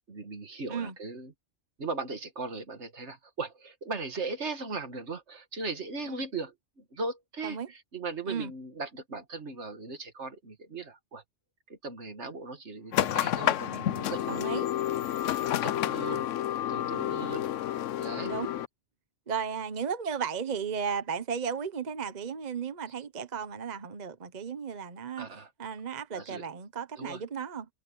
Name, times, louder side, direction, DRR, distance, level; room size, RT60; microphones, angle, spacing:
voice 1, 0.0-1.3 1.8-11.2 11.7-14.7 15.6-16.3 16.7-17.5 18.0-18.3 25.2-25.5 26.1-26.5 27.0-27.2, right 3 dB, 70° right, 2.1 m, -38 dB
sound 1, 12.9-18.7, left 12 dB, 90° left, 1.0 m, -30 dB
voice 2, 14.3-14.7 17.1-17.3 18.2-18.5 19.3-25.3 25.6-27.7, right 6 dB, 40° right, 1.0 m, -34 dB
omnidirectional pair, 1.2 m